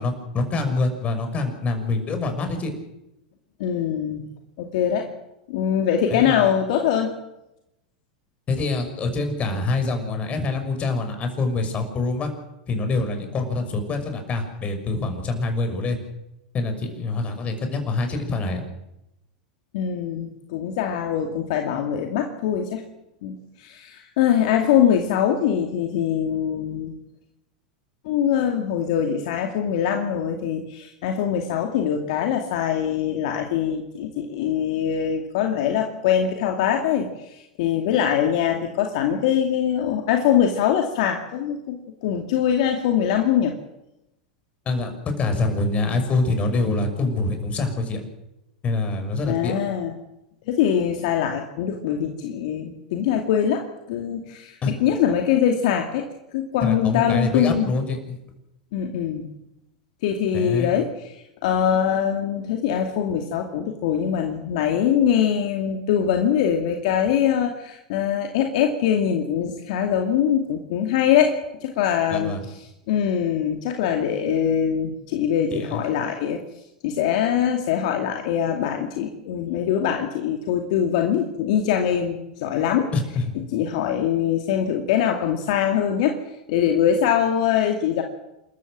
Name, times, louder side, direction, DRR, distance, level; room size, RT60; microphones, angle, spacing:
voice 1, 0.0-2.7 6.1-6.5 8.5-12.3 12.7-16.0 16.5-18.6 44.7-48.0 48.6-49.5 54.6-54.7 56.6-58.2 60.3-60.8 72.1-72.5 75.5-75.8 82.9-83.3, left 3 dB, 30° left, 6 dB, 6.1 m, -25 dB
voice 2, 3.6-4.2 4.6-5.1 5.5-7.1 19.7-22.8 23.2-26.9 28.0-43.5 49.2-49.9 50.5-56.0 56.3-57.7 58.7-59.3 60.0-60.9 61.4-72.3 72.9-76.4 76.8-82.9 83.5-86.2 86.5-88.0, left 9 dB, 65° left, 4 dB, 2.4 m, -23 dB
28.0 x 14.0 x 7.6 m, 0.89 s
hypercardioid pair, 100°, 4 cm